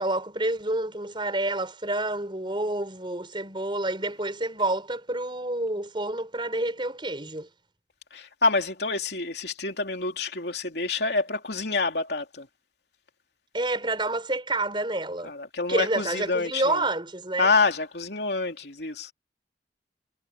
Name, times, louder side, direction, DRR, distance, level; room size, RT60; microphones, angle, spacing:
voice 1, 0.0-7.5 13.5-15.3 15.7-17.5, right 2 dB, 30° right, 5.5 m, -28 dB
voice 2, 8.1-12.5 15.2-16.8 17.4-19.1, left 3 dB, 65° left, 3.2 m, -27 dB
head